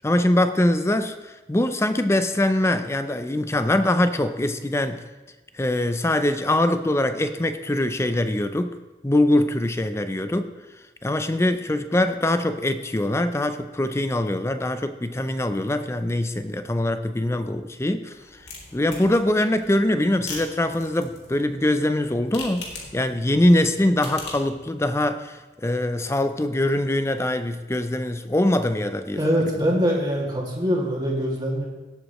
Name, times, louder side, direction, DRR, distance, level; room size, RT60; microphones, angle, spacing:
voice 1, 0.0-5.0 5.5-8.8 9.0-10.5 11.0-18.1 18.7-29.2, left 1 dB, 15° left, 10 dB, 0.5 m, -23 dB
sound 1, 18.1-24.5, left 3 dB, 75° left, 2.4 m, -41 dB
voice 2, 29.2-31.6, equal, 25° right, -3 dB, 2.3 m, -23 dB
18.0 x 7.9 x 3.1 m, 1.2 s
head